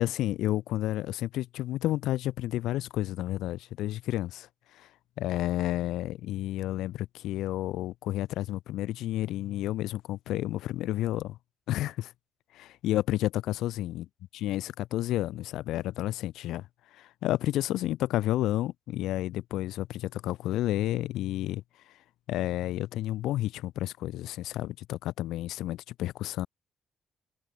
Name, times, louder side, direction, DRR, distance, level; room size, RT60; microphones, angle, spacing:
voice 1, 0.0-4.5 4.8-4.9 5.2-11.4 11.7-12.1 12.5-14.0 14.4-16.7 17.0-21.6 22.3-26.5, left 14 dB, 85° left, 0.7 m, -31 dB
cardioid pair, 90°, 0 cm